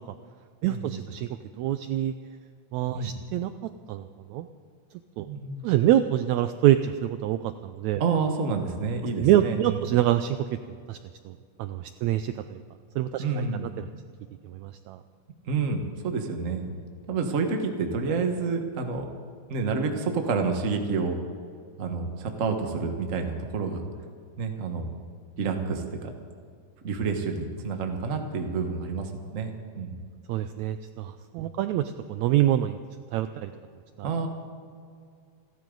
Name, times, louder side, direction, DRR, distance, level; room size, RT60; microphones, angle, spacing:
voice 1, 0.6-1.3 1.6-2.1 2.7-4.5 5.2-5.3 5.6-8.0 9.2-10.4 10.9-11.0 11.2-11.3 11.6-12.6 13.0-13.4 13.8-13.9 14.4-15.0 30.3-32.8 33.1-33.5 34.0-34.1, right 12 dB, 85° right, 10 dB, 1.6 m, -25 dB
voice 2, 5.2-5.7 8.0-9.8 13.2-13.7 15.4-16.7 17.1-19.1 19.5-21.2 21.8-23.8 24.4-24.9 25.4-26.1 26.8-30.0 34.0-34.3, right 4 dB, 45° right, 4 dB, 1.0 m, -29 dB
29.0 x 12.5 x 3.9 m, 2.2 s
omnidirectional pair, 3.8 m